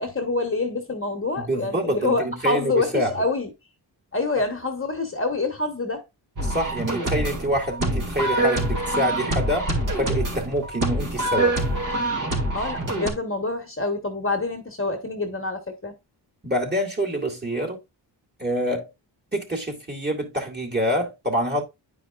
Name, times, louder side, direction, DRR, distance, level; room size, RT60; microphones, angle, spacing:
voice 1, 0.0-3.5 4.1-6.0 12.5-15.9, left 3 dB, 30° left, 1.3 m, -26 dB
voice 2, 1.4-3.2 4.4-4.5 6.4-9.7 10.0-11.5 16.4-17.8 18.4-18.9 19.3-21.6, equal, 20° right, 2.2 m, -26 dB
sound 1, 6.4-13.1, right 1 dB, 45° right, 2.3 m, -25 dB
9.9 x 4.9 x 2.4 m
wide cardioid pair, 85°, 45 cm